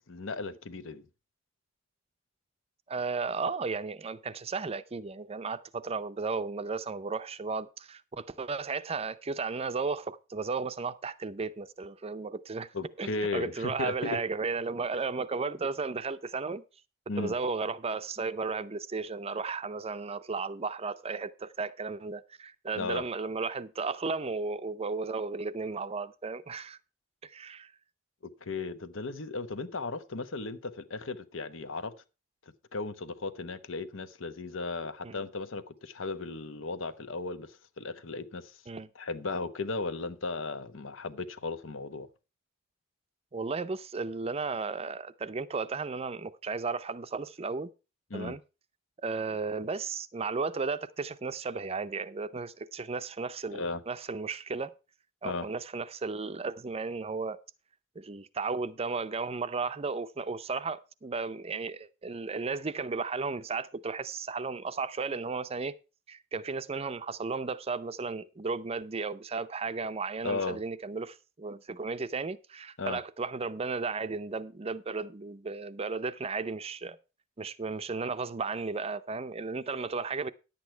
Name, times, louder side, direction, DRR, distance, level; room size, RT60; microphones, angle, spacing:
voice 1, 0.1-1.0 12.7-14.2 17.1-17.4 22.8-23.0 28.2-31.9 32.7-38.6 38.9-42.1 48.1-48.4 53.5-53.8 55.2-55.5 70.2-70.6 72.8-73.0, left 3 dB, 75° left, 0.9 m, -36 dB
voice 2, 2.9-12.7 13.0-16.6 17.2-26.8 27.2-27.7 35.0-35.2 38.7-38.9 43.3-47.7 48.1-48.4 49.0-54.7 55.2-57.4 58.0-65.8 66.1-77.0 77.4-80.3, right 4 dB, 30° right, 0.5 m, -34 dB
10.5 x 8.5 x 4.4 m
head